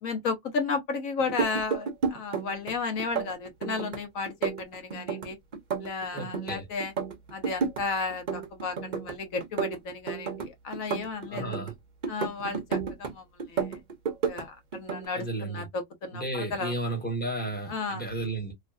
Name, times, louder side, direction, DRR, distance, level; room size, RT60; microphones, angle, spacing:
voice 1, 0.0-5.4 5.8-6.9 7.3-11.6 12.1-13.8 14.2-16.7 17.7-18.0, left 4 dB, 85° left, 1.3 m, -33 dB
sound 1, 1.2-2.7 3.0-4.0 4.3-6.5 6.8-7.8 8.1-9.1 9.4-11.7 12.0-13.1 13.4-14.4 14.7-15.1, right 6 dB, 45° right, 0.7 m, -31 dB
voice 2, 6.1-6.7 11.3-11.7 15.1-15.6 16.1-18.5, right 2 dB, 10° left, 1.2 m, -33 dB
3.1 x 2.4 x 2.4 m
omnidirectional pair, 1.4 m